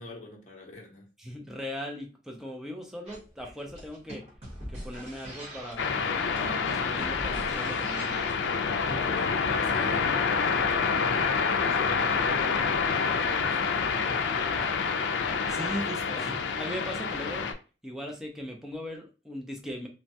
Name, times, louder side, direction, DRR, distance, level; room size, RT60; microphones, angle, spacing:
voice 1, 0.0-1.1 8.8-14.7, left 2 dB, 40° left, -1 dB, 0.6 m, -44 dB
voice 2, 1.2-4.3 4.7-6.0 6.3-8.2 15.3-17.5 17.8-19.9, equal, 5° right, 1 dB, 0.4 m, -39 dB
sound 1, 3.1-8.5, equal, 35° right, 1.2 m, -43 dB
sound 2, 5.8-17.5, left 5 dB, 85° left, 0.4 m, -27 dB
3.1 x 2.2 x 2.6 m, 0.33 s
head